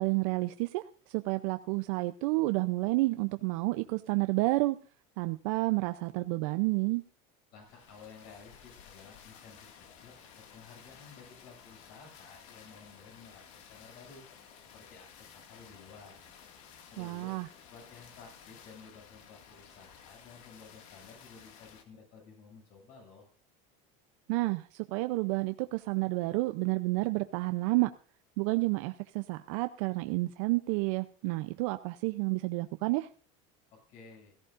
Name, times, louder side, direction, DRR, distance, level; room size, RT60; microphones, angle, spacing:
voice 1, 0.0-4.8 5.2-7.0 17.0-17.5 24.3-27.9 28.4-33.1, right 22 dB, 75° right, 0.6 m, -30 dB
sound 1, 7.5-21.8, left 7 dB, 75° left, 2.1 m, -54 dB
voice 2, 7.5-9.7 10.0-14.2 14.7-16.3 16.9-17.4 17.7-23.3 33.7-34.3, left 5 dB, 60° left, 7.0 m, -54 dB
17.0 x 14.0 x 2.5 m
cardioid pair, 150°, 17 cm